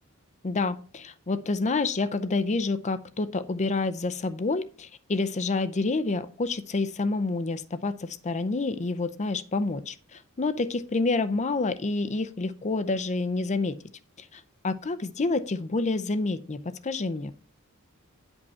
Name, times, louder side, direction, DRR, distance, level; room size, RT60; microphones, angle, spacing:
voice 1, 0.4-13.8 14.3-17.3, left 3 dB, 30° left, 13 dB, 0.5 m, -28 dB
9.7 x 5.3 x 5.6 m, 0.40 s
head